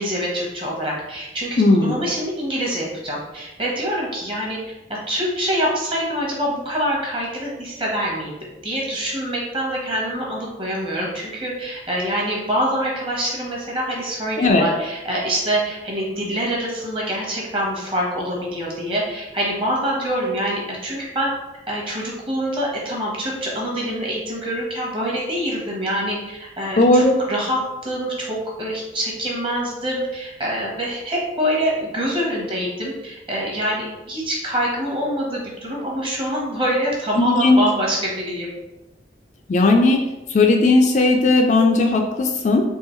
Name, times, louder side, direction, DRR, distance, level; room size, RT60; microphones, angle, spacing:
voice 1, 0.0-4.6 5.1-8.3 8.6-21.3 21.7-38.5, equal, 30° right, -3 dB, 1.0 m, -25 dB
voice 2, 1.6-1.9 14.4-14.7 26.8-27.2 37.2-37.6 39.5-40.0 40.3-42.6, left 2 dB, 40° left, 2 dB, 0.3 m, -16 dB
3.7 x 2.9 x 3.0 m, 1.0 s
head